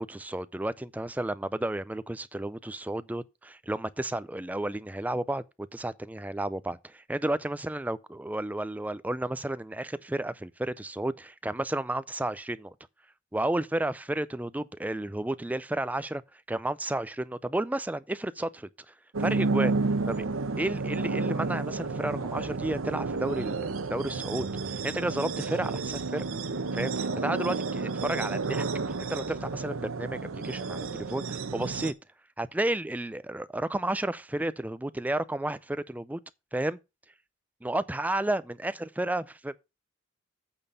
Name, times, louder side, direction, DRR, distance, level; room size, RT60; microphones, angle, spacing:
voice 1, 0.0-12.7 13.3-18.9 19.2-19.7 20.1-20.3 20.6-26.2 26.7-28.7 29.0-31.9 32.4-36.2 36.5-36.8 37.6-39.6, right 1 dB, 5° right, 0.4 m, -32 dB
sound 1, 19.1-31.9, right 3 dB, 85° right, 0.8 m, -31 dB
8.8 x 4.2 x 6.6 m
head